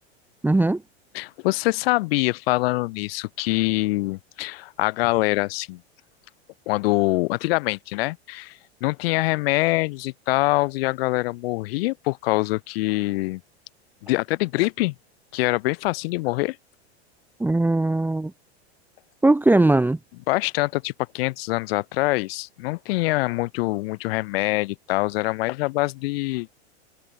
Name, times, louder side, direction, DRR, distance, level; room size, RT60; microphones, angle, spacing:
voice 1, 0.4-0.8 17.4-18.3 19.2-20.0, right 2 dB, 5° right, 1.3 m, -19 dB
voice 2, 1.1-5.8 6.7-13.4 14.0-14.9 15.3-16.6 20.3-26.6, left 21 dB, 65° left, 4.0 m, -24 dB
hypercardioid pair, 110°, 33 cm